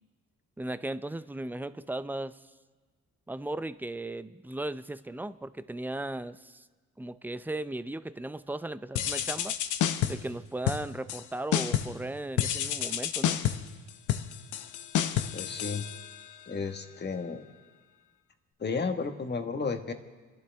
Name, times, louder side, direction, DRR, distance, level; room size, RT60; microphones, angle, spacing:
voice 1, 0.6-2.4 3.3-6.7 7.0-9.5 10.1-13.4, right 2 dB, 5° right, 14 dB, 0.5 m, -36 dB
sound 1, 9.0-10.3 10.7-11.2 11.5-12.0 12.4-16.4, left 10 dB, 80° left, 0.8 m, -30 dB
voice 2, 15.3-15.9 16.5-17.5 18.6-19.9, left 4 dB, 35° left, 6 dB, 1.5 m, -33 dB
29.0 x 11.5 x 3.5 m, 1.4 s
cardioid pair, 90°, 30 cm